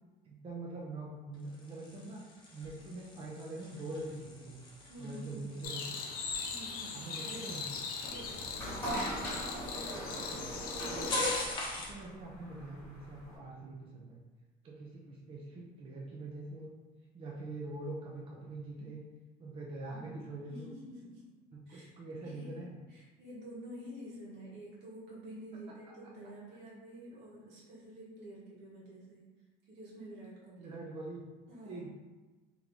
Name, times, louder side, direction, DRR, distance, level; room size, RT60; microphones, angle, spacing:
voice 1, 0.2-2.2 2.5-4.6 5.0-6.2 6.9-7.8 10.3-10.4 11.8-14.2 14.6-16.7 17.1-19.0 19.4-20.7 21.7-22.8 30.6-31.2 31.6-31.9, right 2 dB, 35° right, -3 dB, 0.6 m, -44 dB
sound 1, 1.3-12.0, left 2 dB, 30° left, 0.8 m, -45 dB
voice 2, 4.9-5.6 6.5-7.0 8.0-8.6 9.4-10.3 20.5-21.2 21.7-29.2 29.6-30.8 31.5-31.8, right 1 dB, 80° right, -6 dB, 1.4 m, -49 dB
sound 2, 5.6-11.4, left 5 dB, 60° left, 0.6 m, -40 dB
sound 3, 8.1-13.4, equal, 10° left, 1.4 m, -39 dB
3.5 x 3.1 x 3.8 m, 1.2 s
cardioid pair, 165°, 17 cm